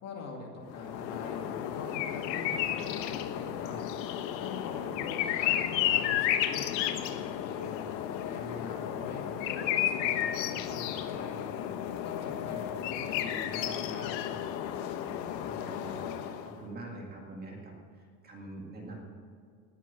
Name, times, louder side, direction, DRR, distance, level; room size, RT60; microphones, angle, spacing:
voice 1, 0.0-3.8 4.4-7.8 8.2-11.5 12.0-14.1, left 3 dB, 30° left, 0 dB, 2.4 m, -43 dB
sound 1, 0.7-16.6, left 11 dB, 80° left, 1.3 m, -33 dB
voice 2, 15.0-19.0, right 2 dB, 20° right, -1 dB, 2.0 m, -45 dB
19.0 x 7.5 x 7.5 m, 2.1 s
cardioid pair, 175°, 50 cm